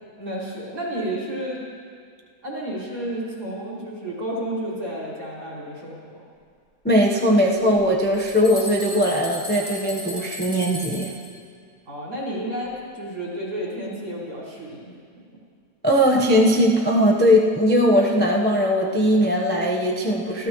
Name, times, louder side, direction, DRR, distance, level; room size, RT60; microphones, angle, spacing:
voice 1, 0.2-1.6 2.4-6.2 11.9-15.0, right 1 dB, 55° right, -6 dB, 5.5 m, -31 dB
voice 2, 6.8-11.1 15.8-20.5, equal, 10° left, -1 dB, 0.6 m, -19 dB
sound 1, 7.7-11.3, equal, 10° right, 5.1 m, -35 dB
29.5 x 14.5 x 3.2 m, 2.1 s
omnidirectional pair, 2.1 m